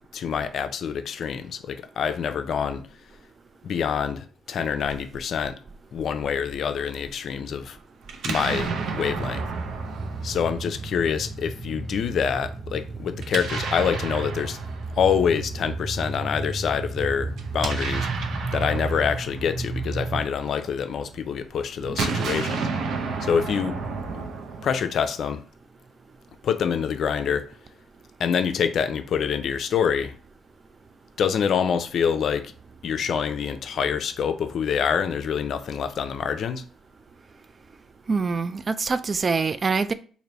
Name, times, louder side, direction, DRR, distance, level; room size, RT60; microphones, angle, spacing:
voice 1, 0.1-2.8 3.6-5.6 5.9-7.8 8.2-9.4 10.2-14.6 15.0-18.1 18.5-22.7 23.2-23.8 24.1-24.2 24.6-25.4 26.4-27.5 28.2-30.1 31.2-32.5 32.8-36.6, left 7 dB, 65° left, 0.5 m, -26 dB
Explosion, 8.1-11.1 13.2-15.4 17.3-20.7 21.8-25.2, right 5 dB, 70° right, 0.7 m, -32 dB
sound 1, 8.7-20.2, right 3 dB, 5° right, 0.7 m, -33 dB
voice 2, 38.1-39.9, right 4 dB, 35° right, 0.3 m, -24 dB
3.3 x 2.6 x 3.9 m
cardioid pair, 90°, 0 cm